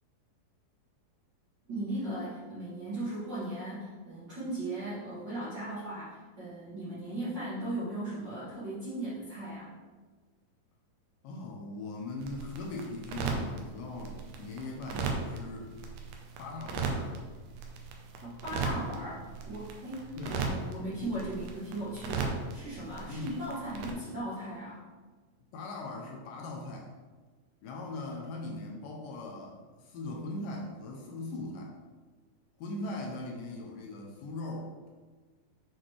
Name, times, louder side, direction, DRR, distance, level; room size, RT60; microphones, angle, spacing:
voice 1, 1.7-9.7 18.2-24.8, right 1 dB, 40° right, -11 dB, 1.9 m, -37 dB
voice 2, 11.2-15.7 16.4-17.2 20.2-20.5 23.1-23.4 25.5-26.9 27.6-31.8 32.6-34.9, left 2 dB, 80° left, 0 dB, 2.2 m, -40 dB
sound 1, 12.2-23.9, right 4 dB, 80° right, 2.2 m, -37 dB
7.7 x 4.1 x 3.2 m, 1.4 s
omnidirectional pair, 4.1 m